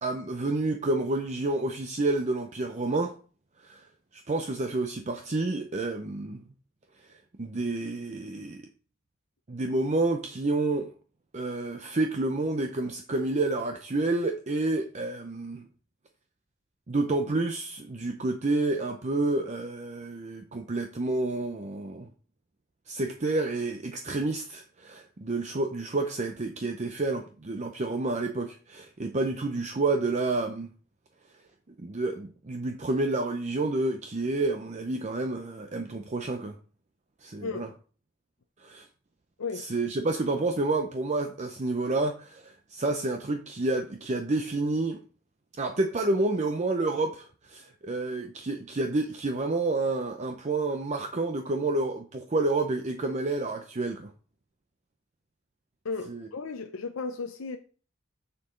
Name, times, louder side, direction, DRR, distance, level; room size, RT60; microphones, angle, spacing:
voice 1, 0.0-3.2 3.6-3.9 4.1-6.4 7.4-8.6 9.5-10.9 11.3-15.7 16.9-22.1 22.9-30.7 31.8-36.5 37.2-37.7 38.6-38.8 39.5-45.0 45.6-54.1 56.1-56.3, right 2 dB, 35° right, 0.6 m, -29 dB
voice 2, 55.8-57.6, left 4 dB, 85° left, 0.6 m, -34 dB
6.9 x 6.8 x 3.8 m
head